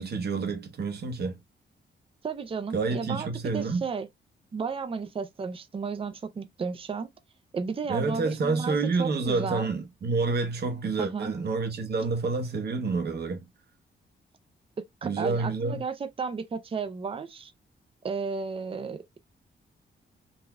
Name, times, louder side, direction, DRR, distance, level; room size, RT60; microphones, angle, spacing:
voice 1, 0.0-1.4 2.7-3.8 7.9-13.4 15.0-15.8, right 4 dB, 55° right, 1.0 m, -28 dB
voice 2, 2.2-4.1 4.5-7.1 7.5-9.7 11.0-11.3 15.0-17.5 18.0-19.2, right 5 dB, 30° right, 0.5 m, -33 dB
4.0 x 2.7 x 2.3 m
wide cardioid pair, 130°, 19 cm